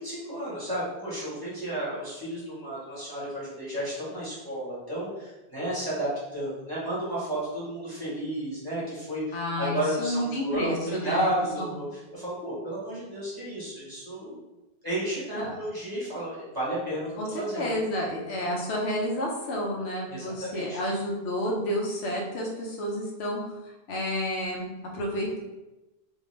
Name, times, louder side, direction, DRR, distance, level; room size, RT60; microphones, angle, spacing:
voice 1, 0.0-11.8 12.1-14.4 14.8-17.7 18.4-18.5 20.1-20.8, right 1 dB, 25° right, -9 dB, 0.9 m, -32 dB
voice 2, 9.3-11.3 11.6-11.7 15.4-15.5 17.2-17.3 17.5-23.4 23.6-25.4, equal, 90° left, -2 dB, 0.9 m, -30 dB
2.5 x 2.2 x 3.0 m, 1.0 s
omnidirectional pair, 1.1 m